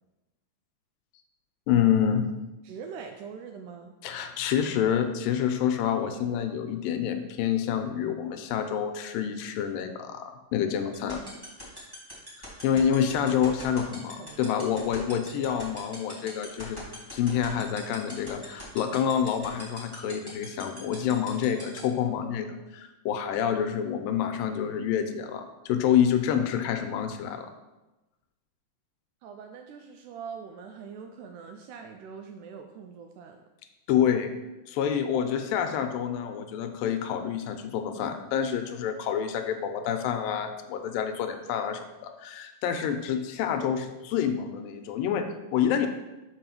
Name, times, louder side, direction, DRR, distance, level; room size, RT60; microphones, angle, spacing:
voice 1, 1.7-2.3 4.0-11.2 12.6-16.8 17.1-27.5 33.9-34.3 34.7-45.9, left 8 dB, 85° left, 7 dB, 2.3 m, -27 dB
voice 2, 2.6-3.9 11.1-11.2 12.7-12.8 13.8-14.6 29.2-33.4, right 6 dB, 80° right, 4 dB, 1.8 m, -43 dB
sound 1, 10.9-21.8, left 1 dB, 10° right, 1.8 m, -41 dB
5.5 x 5.4 x 5.9 m, 1.0 s
omnidirectional pair, 4.0 m